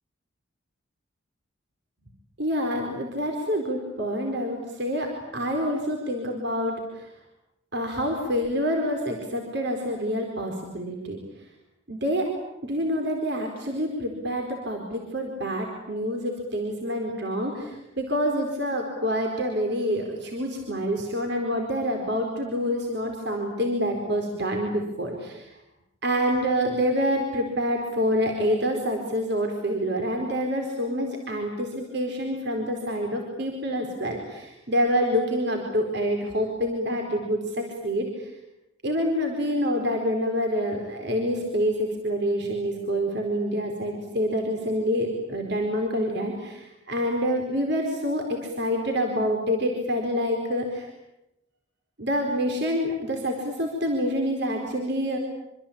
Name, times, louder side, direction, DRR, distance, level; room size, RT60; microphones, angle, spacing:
voice 1, 2.4-7.1 7.7-11.2 11.9-12.2 12.6-25.5 26.0-38.3 38.8-50.9 52.0-55.2, equal, 55° right, 2 dB, 4.5 m, -27 dB
26.0 x 25.5 x 8.8 m, 0.91 s
head